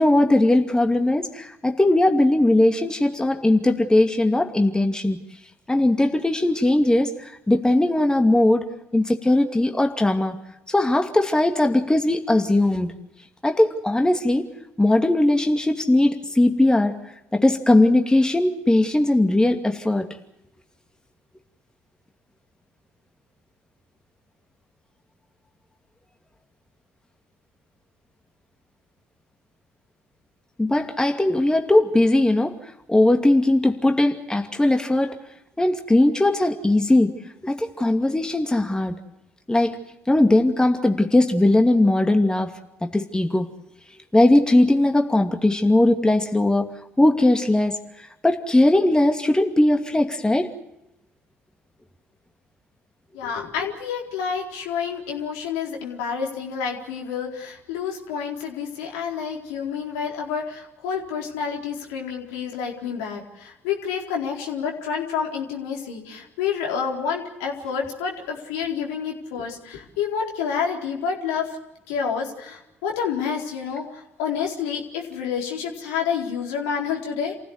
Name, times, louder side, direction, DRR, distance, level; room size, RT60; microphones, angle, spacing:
voice 1, 0.0-5.2 5.7-8.6 8.9-10.4 10.7-12.9 13.4-14.5 14.8-17.0 17.3-20.1 30.6-32.6 32.9-35.1 35.6-37.1 37.4-39.0 39.5-39.8 40.1-42.5 42.8-43.5 44.1-46.7 47.0-50.5, left 1 dB, 10° left, 5 dB, 2.5 m, -19 dB
voice 2, 53.1-71.6 71.9-77.4, left 6 dB, 80° left, 0 dB, 4.2 m, -29 dB
28.0 x 16.0 x 8.1 m, 0.88 s
hypercardioid pair, 60°, 6 cm